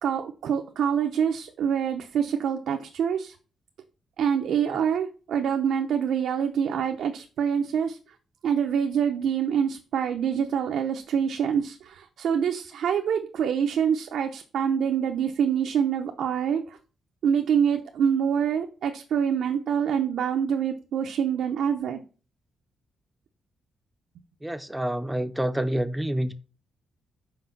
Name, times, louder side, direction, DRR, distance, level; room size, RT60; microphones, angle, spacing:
voice 1, 0.0-3.4 4.2-8.0 8.4-16.8 17.2-22.0, right 8 dB, 70° right, 4 dB, 0.7 m, -26 dB
voice 2, 24.4-26.3, right 1 dB, 5° right, 11 dB, 0.5 m, -28 dB
5.9 x 4.9 x 5.8 m, 0.36 s
wide cardioid pair, 175°, 0 cm